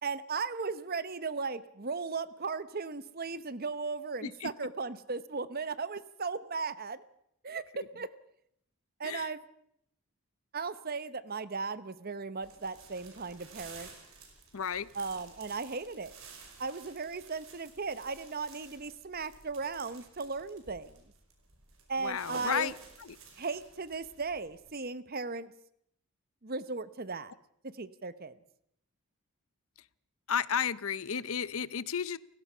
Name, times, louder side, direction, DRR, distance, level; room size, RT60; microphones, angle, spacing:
voice 1, 0.0-7.0 7.4-8.1 9.0-9.4 10.5-13.9 14.9-16.1 16.6-20.9 21.9-22.7 23.4-25.5 26.4-27.3 27.6-28.3, right 4 dB, 45° right, 15 dB, 0.9 m, -36 dB
sound 1, 12.4-24.7, right 4 dB, 65° right, 4.9 m, -53 dB
voice 2, 14.5-14.9 22.0-23.2 30.3-32.2, left 7 dB, 65° left, 18 dB, 0.7 m, -33 dB
29.5 x 16.0 x 5.7 m, 0.73 s
head